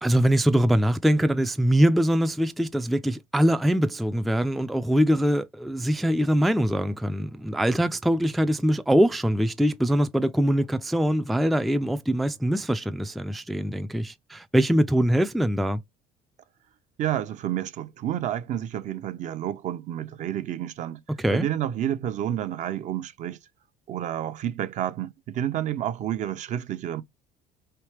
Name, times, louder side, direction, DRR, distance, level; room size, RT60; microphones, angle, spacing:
voice 1, 0.0-15.8 21.1-21.5, equal, ahead, 0.3 m, -23 dB
voice 2, 17.0-21.0 21.3-23.4 23.9-27.0, right 11 dB, 50° right, 0.5 m, -30 dB
3.3 x 2.8 x 3.0 m
supercardioid pair, 85°, 15 cm